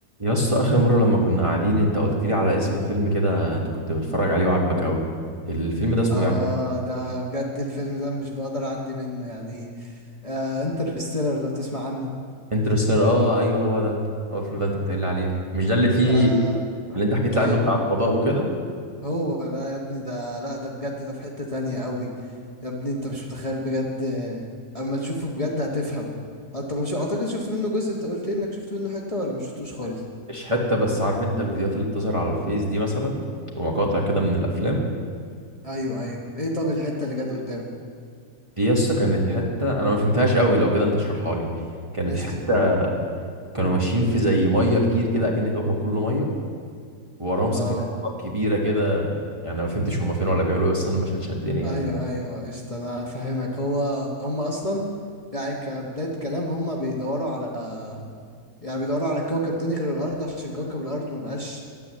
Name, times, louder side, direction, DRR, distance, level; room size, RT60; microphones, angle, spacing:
voice 1, 0.2-5.0 5.4-6.3 12.5-14.0 14.3-16.3 16.9-18.5 30.3-33.2 33.5-34.8 37.3-37.4 38.6-41.5 41.9-42.9 43.5-46.3 47.2-47.7 48.0-49.2 49.4-51.8, equal, 20° right, -3 dB, 1.3 m, -22 dB
voice 2, 6.1-10.0 10.2-12.1 16.1-16.6 16.9-17.0 17.3-17.6 19.0-22.1 22.6-24.5 24.7-26.1 26.5-30.0 35.6-37.6 42.0-42.4 47.5-47.9 51.6-54.8 55.3-58.0 58.6-61.6, left 1 dB, 25° left, -3 dB, 1.2 m, -29 dB
11.0 x 9.4 x 7.5 m, 2.1 s
omnidirectional pair, 1.7 m